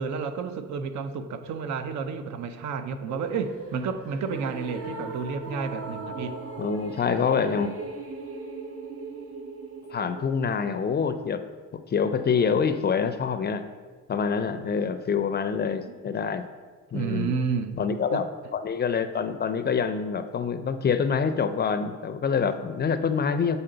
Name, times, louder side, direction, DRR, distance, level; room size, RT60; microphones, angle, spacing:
voice 1, 0.0-6.4 16.9-17.8 18.1-18.3, right 5 dB, 70° right, 9 dB, 0.6 m, -31 dB
sound 1, 3.1-11.3, right 3 dB, 50° right, 1.0 m, -39 dB
voice 2, 6.6-7.7 9.9-11.4 11.7-13.6 14.1-16.4 16.9-17.3 17.8-18.3 18.5-23.6, left 6 dB, 35° left, 10 dB, 0.4 m, -26 dB
7.8 x 4.1 x 3.9 m, 1.5 s
cardioid pair, 90°, 30 cm